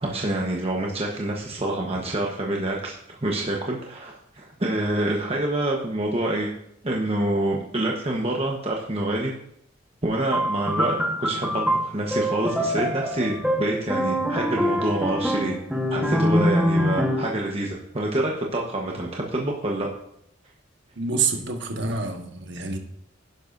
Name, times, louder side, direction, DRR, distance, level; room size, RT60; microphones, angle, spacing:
voice 1, 0.0-6.5 6.8-9.3 10.0-15.5 15.9-19.9, right 1 dB, 30° right, -1 dB, 1.1 m, -27 dB
sound 1, 10.3-17.4, equal, 5° right, 1.3 m, -24 dB
voice 2, 20.9-22.8, right 4 dB, 65° right, 4 dB, 1.4 m, -27 dB
11.0 x 11.0 x 2.6 m, 0.73 s
head